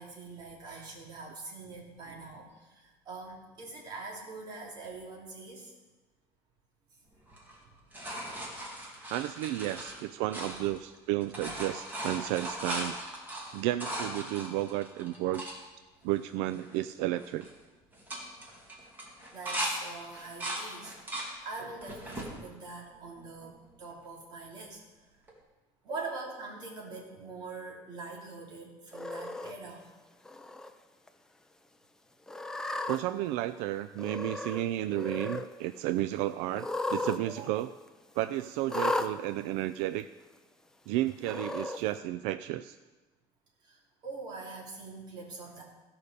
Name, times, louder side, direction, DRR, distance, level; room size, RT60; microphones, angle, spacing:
voice 1, 0.0-5.7 8.0-8.7 9.7-9.8 19.3-24.8 25.8-29.8 37.3-37.4 43.6-45.6, right 3 dB, 40° right, -2 dB, 2.9 m, -44 dB
sound 1, 7.3-11.0 11.2-15.6 16.1-16.2 16.5-16.9 17.2-17.5 17.9-19.7 20.1-21.3 21.8-22.3 22.9-23.7 25.3-25.4, right 1 dB, 15° right, 2.2 m, -38 dB
voice 2, 9.1-13.0 13.5-15.4 16.0-17.5 32.9-37.7 38.2-40.1 40.9-42.8, right 14 dB, 75° right, 11 dB, 0.4 m, -32 dB
Cat, 28.9-29.5 30.2-30.7 31.1-31.2 32.3-33.0 34.0-34.6 34.9-35.5 36.5-37.2 37.5-37.6 38.7-39.1 40.0-40.1 41.2-41.8, left 2 dB, 5° left, 0.5 m, -34 dB
15.5 x 5.5 x 6.7 m, 1.2 s
cardioid pair, 160°, 11 cm